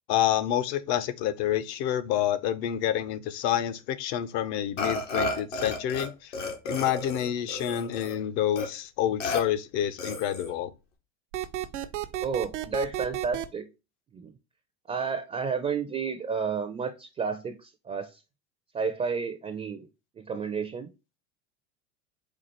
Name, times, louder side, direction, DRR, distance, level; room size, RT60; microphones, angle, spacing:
voice 1, 0.1-6.3 6.6-10.7, left 11 dB, 55° left, 0.6 m, -28 dB
Burping eructation, 4.8-6.1 6.3-8.2 8.6-8.7 9.2-9.4 10.0-10.5, left 2 dB, 85° left, 1.3 m, -32 dB
sound 1, 11.3-13.5, right 13 dB, 80° right, 0.6 m, -32 dB
voice 2, 12.2-13.7 14.1-14.3 14.9-18.1 18.7-19.9 20.2-20.9, right 5 dB, 20° right, 0.4 m, -31 dB
4.5 x 2.4 x 4.3 m
hypercardioid pair, 90°, 36 cm